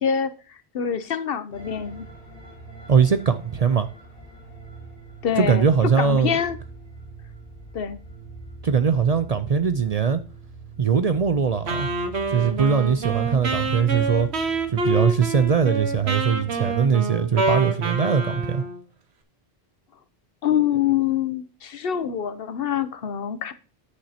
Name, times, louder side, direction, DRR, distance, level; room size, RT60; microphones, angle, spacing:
voice 1, 0.0-2.1 5.2-5.7 6.0-6.6 7.7-8.0 20.4-23.5, left 8 dB, 65° left, 0.9 m, -25 dB
sound 1, 1.5-16.8, right 3 dB, 50° left, 4.2 m, -43 dB
voice 2, 2.9-3.9 5.3-6.4 8.6-10.2 10.8-11.9 12.3-14.3 14.7-18.6, right 6 dB, 45° right, 0.5 m, -21 dB
Wind instrument woodwind instrument, 11.7-18.8, right 3 dB, 90° right, 1.5 m, -27 dB
9.8 x 8.8 x 2.8 m
omnidirectional pair, 1.1 m